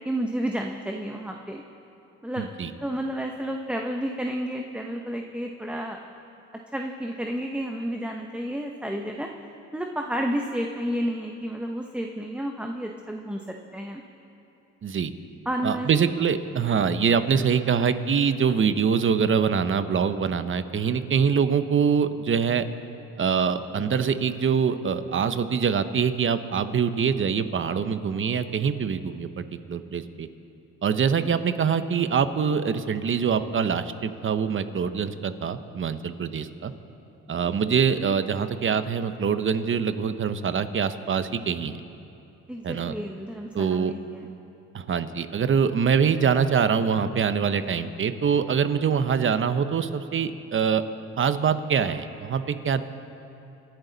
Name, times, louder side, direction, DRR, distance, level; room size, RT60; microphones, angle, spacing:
voice 1, 0.0-1.6 2.2-2.5 2.8-6.0 6.7-9.3 9.7-13.4 13.7-14.0 15.5-15.9 37.4-37.6 42.5-44.3, equal, 5° right, 2 dB, 0.9 m, -31 dB
voice 2, 2.4-2.7 14.8-15.1 15.6-22.6 23.2-30.3 30.8-36.7 37.3-41.8 42.6-43.0 43.5-43.9 44.7-50.8 51.2-52.8, right 6 dB, 40° right, 11 dB, 0.9 m, -24 dB
26.0 x 11.0 x 4.0 m, 2.8 s
cardioid pair, 90°, 30 cm